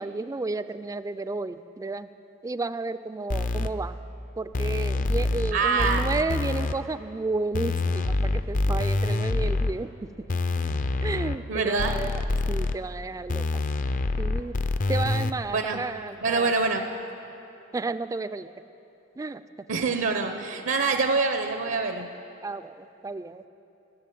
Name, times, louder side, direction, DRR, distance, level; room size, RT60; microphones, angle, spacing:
voice 1, 0.0-2.1 2.4-4.0 4.4-9.9 11.0-12.2 12.5-13.6 14.2-14.6 14.9-16.5 17.7-18.5 19.2-19.4 19.7-19.8 22.4-23.5, right 3 dB, 15° right, 12 dB, 0.3 m, -32 dB
sound 1, 3.3-3.7 4.5-5.5 5.8-6.7 7.5-9.7 10.3-11.4 11.8-12.8 13.3-15.3, left 2 dB, 40° left, 0.5 m, -26 dB
voice 2, 5.5-6.0 11.5-11.9 15.5-15.8 16.2-16.8 19.7-22.1, right 4 dB, 75° right, 6 dB, 0.7 m, -25 dB
14.5 x 7.1 x 9.2 m, 2.9 s
head